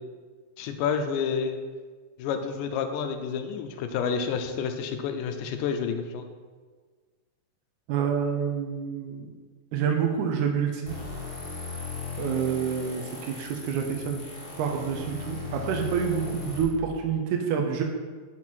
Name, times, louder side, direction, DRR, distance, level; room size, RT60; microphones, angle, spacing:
voice 1, 0.6-1.6 2.2-6.3, left 6 dB, 85° left, 7 dB, 2.2 m, -29 dB
voice 2, 7.9-9.3 9.7-11.0 12.2-14.2 14.6-17.8, right 7 dB, 80° right, 1 dB, 1.9 m, -28 dB
sound 1, 10.9-16.6, left 5 dB, 60° left, 0.5 m, -37 dB
6.2 x 4.2 x 4.4 m, 1.5 s
omnidirectional pair, 3.8 m